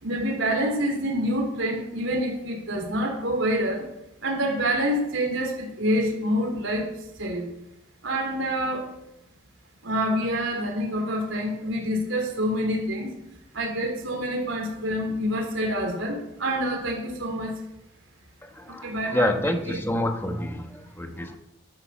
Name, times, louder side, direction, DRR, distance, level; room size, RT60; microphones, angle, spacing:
voice 1, 0.0-3.8 4.2-6.9 7.2-7.5 8.0-8.9 9.8-13.1 13.5-17.6 18.8-19.3 19.7-19.8, equal, 75° right, 1 dB, 3.5 m, -27 dB
voice 2, 18.4-21.4, left 1 dB, 10° left, 5 dB, 1.3 m, -28 dB
11.5 x 9.8 x 7.2 m, 0.87 s
head